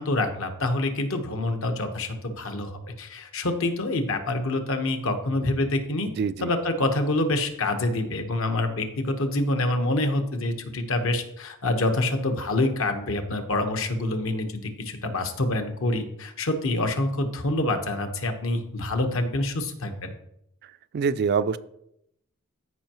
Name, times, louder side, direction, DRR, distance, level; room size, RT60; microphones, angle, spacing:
voice 1, 0.0-6.1 6.4-20.1, left 2 dB, 70° left, 6 dB, 1.1 m, -26 dB
voice 2, 6.2-6.5 20.9-21.6, right 6 dB, 50° right, 14 dB, 0.3 m, -24 dB
14.0 x 5.4 x 3.0 m, 0.77 s
head